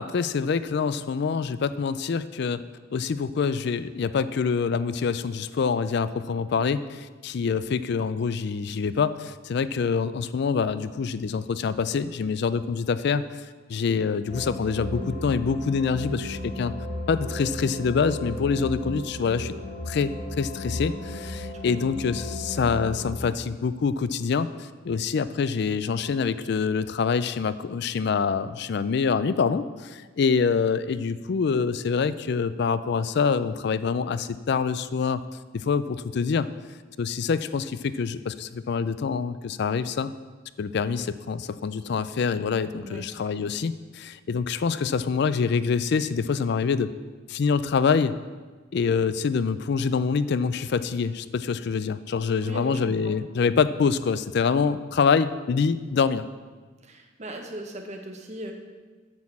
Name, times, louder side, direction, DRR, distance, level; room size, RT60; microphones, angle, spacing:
voice 1, 0.0-2.6 2.9-13.4 13.7-16.7 17.1-19.5 19.9-35.2 35.5-36.5 37.0-40.1 40.6-46.9 47.3-48.2 48.7-56.2, left 5 dB, 60° left, 14 dB, 0.4 m, -25 dB
sound 1, 14.3-23.1, left 1 dB, 80° left, 2.6 m, -35 dB
voice 2, 52.4-53.1 56.8-58.5, right 1 dB, 40° right, 3 dB, 1.3 m, -38 dB
8.8 x 6.4 x 7.1 m, 1.4 s
head